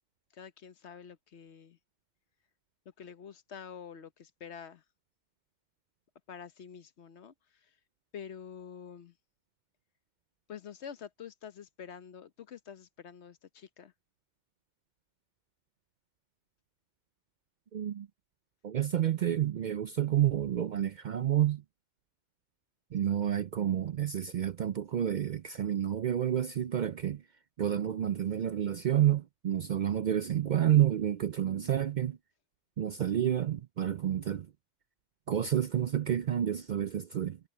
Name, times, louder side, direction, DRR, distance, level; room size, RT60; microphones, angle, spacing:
voice 1, 0.3-1.8 3.0-4.8 6.3-7.7 8.1-9.1 10.5-13.9, left 7 dB, 70° left, 1.2 m, -47 dB
voice 2, 17.7-18.1 18.6-21.6 22.9-27.2 27.6-32.2 32.8-34.5 35.3-37.4, right 10 dB, 55° right, 0.5 m, -29 dB
omnidirectional pair, 1.2 m